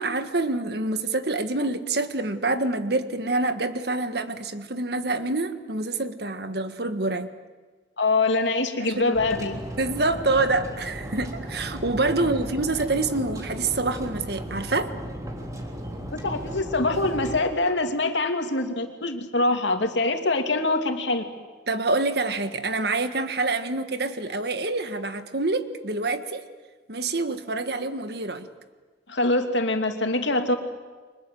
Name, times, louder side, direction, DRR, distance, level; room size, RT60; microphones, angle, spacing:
voice 1, 0.0-7.3 8.8-9.2 9.8-14.9 21.7-26.4 26.9-28.5, right 2 dB, 60° right, 9 dB, 1.6 m, -26 dB
voice 2, 8.0-9.6 12.2-12.3 16.1-21.2 29.1-30.6, left 2 dB, 85° left, 5 dB, 2.8 m, -24 dB
sound 1, 9.1-17.4, equal, 20° right, 3.4 m, -35 dB
30.0 x 24.5 x 7.8 m, 1.4 s
head